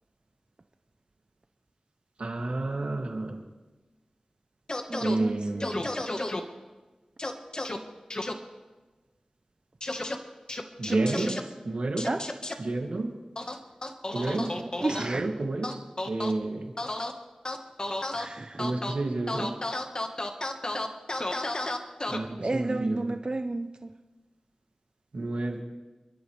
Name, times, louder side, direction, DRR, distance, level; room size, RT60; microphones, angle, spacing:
voice 1, 2.2-3.4 5.0-5.9 10.8-11.3 11.6-12.1 12.6-13.1 14.1-14.6 15.0-16.7 18.6-19.5 22.1-23.1 25.1-25.6, right 2 dB, 90° right, 1 dB, 2.5 m, -30 dB
sound 1, 4.7-5.2 5.6-6.4 7.2-7.8 8.1-8.3 9.8-10.2 10.5-11.4 12.0-12.5 13.4-15.1 15.6-16.3 16.8-17.1 17.5-18.3 18.6-18.9 19.3-22.2, left 1 dB, 40° left, 1.5 m, -32 dB
voice 2, 4.9-5.8 10.9-11.4 12.0-12.2 14.2-15.3 18.1-18.7 22.3-23.9, right 2 dB, 45° right, 6 dB, 0.7 m, -33 dB
30.0 x 12.5 x 3.4 m, 1.2 s
wide cardioid pair, 50°, 2 cm